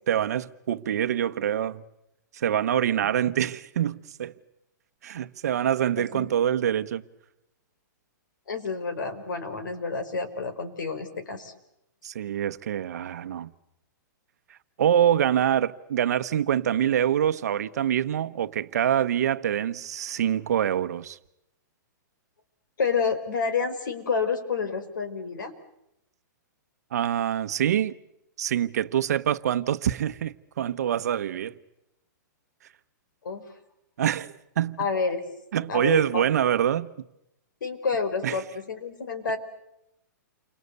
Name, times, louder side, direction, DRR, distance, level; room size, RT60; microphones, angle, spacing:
voice 1, 0.1-1.8 2.3-4.3 5.0-7.0 12.0-13.5 14.8-21.2 26.9-28.0 28.4-31.6 34.0-34.8 35.5-36.9 38.2-38.4, right 10 dB, 55° right, 1.1 m, -25 dB
voice 2, 6.0-6.3 8.5-11.5 22.8-25.5 33.2-33.5 34.8-35.2 35.7-36.3 37.6-39.4, left 5 dB, 90° left, 4.7 m, -29 dB
29.5 x 25.0 x 8.2 m
hypercardioid pair, 175°, 10 cm